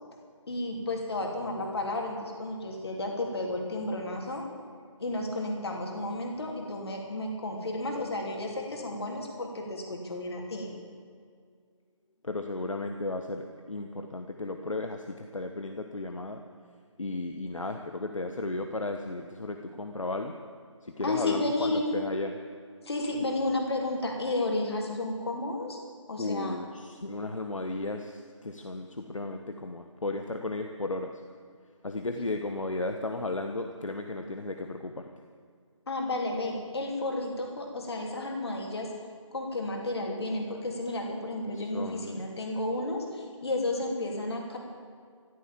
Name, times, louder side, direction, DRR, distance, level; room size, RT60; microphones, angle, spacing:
voice 1, 0.5-4.5 5.0-10.7 21.0-22.0 22.8-25.8 26.1-26.6 35.9-38.9 39.3-44.6, left 2 dB, 55° left, 1 dB, 3.3 m, -32 dB
voice 2, 12.2-16.4 17.0-20.3 20.8-22.4 26.2-31.1 31.8-35.1 41.5-42.2, left 2 dB, 80° left, 5 dB, 1.2 m, -34 dB
14.5 x 13.5 x 7.4 m, 2.1 s
figure-of-eight pair, 155°, 16 cm